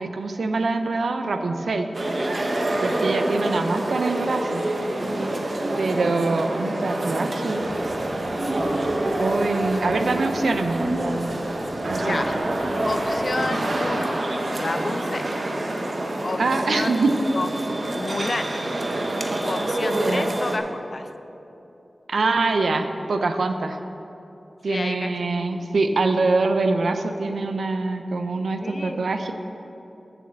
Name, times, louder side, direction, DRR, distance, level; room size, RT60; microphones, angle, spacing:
voice 1, 0.0-1.9 2.8-4.6 5.8-7.6 9.2-11.3 11.9-12.3 16.4-17.1 19.9-20.4 22.1-23.8 24.6-29.3, right 3 dB, 85° right, 7 dB, 0.6 m, -24 dB
sound 1, 1.9-20.6, right 1 dB, 55° right, 0.9 m, -26 dB
sound 2, 7.5-13.5, equal, 15° left, 2.0 m, -43 dB
voice 2, 12.0-12.4 12.9-15.2 16.2-17.0 17.3-17.5 17.9-18.6 19.4-21.1 24.7-25.1 25.4-25.5 28.6-29.0, left 2 dB, 50° left, 8 dB, 0.5 m, -30 dB
7.4 x 6.9 x 7.3 m, 2.9 s
wide cardioid pair, 75°, 0 cm